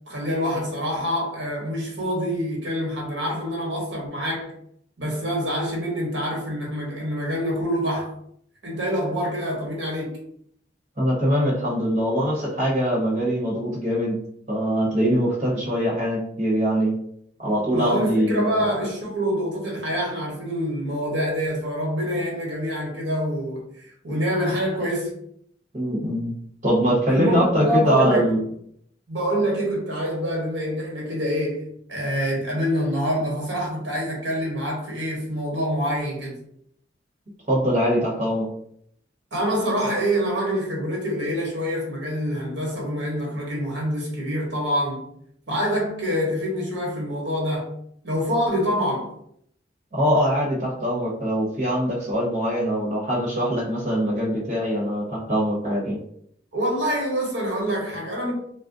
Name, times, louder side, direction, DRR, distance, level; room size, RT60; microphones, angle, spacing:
voice 1, 0.1-4.5 5.0-8.1 8.6-10.2 17.7-25.1 27.1-28.3 29.1-36.4 39.3-45.0 45.5-47.7 48.0-49.1 56.5-58.3, equal, 85° right, 1.1 m, -26 dB
voice 2, 11.0-14.2 14.5-16.9 17.4-18.6 25.7-26.3 26.6-28.4 37.5-38.5 49.9-56.0, equal, 40° right, 1.0 m, -22 dB
2.4 x 2.1 x 3.7 m
head